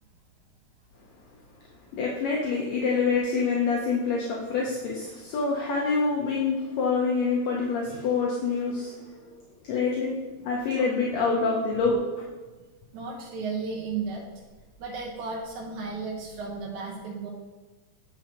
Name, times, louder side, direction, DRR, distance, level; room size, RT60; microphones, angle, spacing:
voice 1, 1.9-8.9 9.6-10.2 10.4-12.2, left 4 dB, 70° left, -2 dB, 1.9 m, -26 dB
voice 2, 12.9-14.2 14.8-17.3, right 4 dB, 80° right, -3 dB, 2.4 m, -34 dB
9.1 x 5.7 x 2.9 m, 1.2 s
omnidirectional pair, 3.5 m